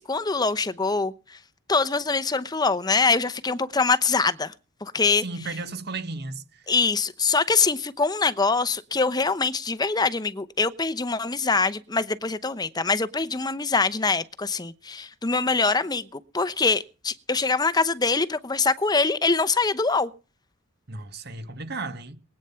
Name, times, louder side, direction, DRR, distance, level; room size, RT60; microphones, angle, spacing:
voice 1, 0.0-1.4 1.7-4.5 4.8-5.2 6.7-20.1, left 4 dB, 20° left, 0.8 m, -24 dB
voice 2, 5.2-6.6 20.9-22.2, right 3 dB, 50° right, 1.6 m, -34 dB
21.5 x 9.0 x 5.7 m
head